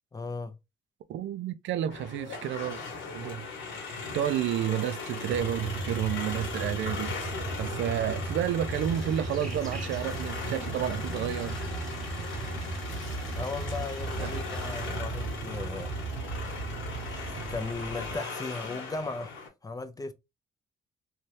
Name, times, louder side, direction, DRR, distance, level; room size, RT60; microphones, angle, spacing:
voice 1, 0.1-0.5 13.3-15.9 17.0-19.4 19.6-20.1, left 3 dB, 20° left, 0.4 m, -37 dB
voice 2, 1.1-2.8 3.1-3.5 4.1-7.2 7.6-11.6 14.2-14.4, right 10 dB, 70° right, 0.4 m, -31 dB
sound 1, 1.9-19.5, left 4 dB, 70° left, 1.0 m, -39 dB
sound 2, 5.3-18.2, right 3 dB, 90° right, 0.8 m, -36 dB
sound 3, 8.7-15.0, equal, ahead, 1.2 m, -48 dB
2.7 x 2.3 x 3.1 m
cardioid pair, 90°, 20 cm